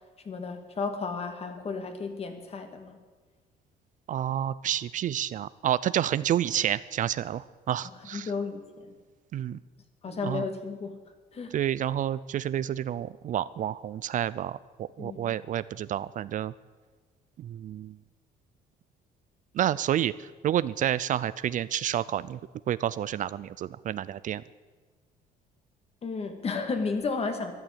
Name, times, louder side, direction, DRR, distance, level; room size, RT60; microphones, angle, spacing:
voice 1, 0.2-3.0 8.0-8.9 10.0-11.0 11.3-11.6 15.0-15.3 26.0-27.5, left 4 dB, 35° left, 7 dB, 2.2 m, -33 dB
voice 2, 4.1-8.3 9.3-9.6 10.2-10.4 11.5-16.5 17.4-18.0 19.5-22.4 22.7-24.4, right 11 dB, 50° right, 18 dB, 0.4 m, -29 dB
13.0 x 11.0 x 8.7 m, 1.4 s
cardioid pair, 110°, 17 cm